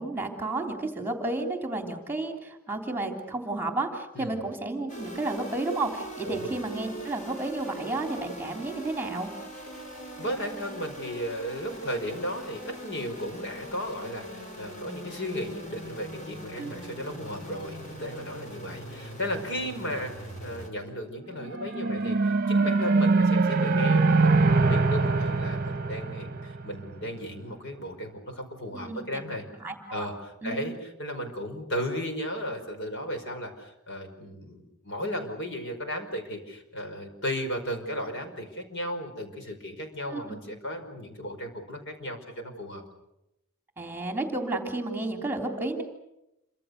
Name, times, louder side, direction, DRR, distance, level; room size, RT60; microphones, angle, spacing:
voice 1, 0.0-9.3 16.6-16.7 28.7-29.2 29.6-30.1 30.4-30.6 40.1-40.2 43.8-45.8, right 2 dB, 10° right, 4 dB, 3.3 m, -32 dB
sound 1, 4.9-20.7, equal, 35° left, 5.8 m, -42 dB
voice 2, 10.2-29.5 29.9-42.8, equal, 55° left, 5 dB, 5.2 m, -35 dB
sound 2, 21.4-26.9, right 3 dB, 40° right, 1.0 m, -23 dB
28.0 x 25.5 x 6.7 m, 0.87 s
head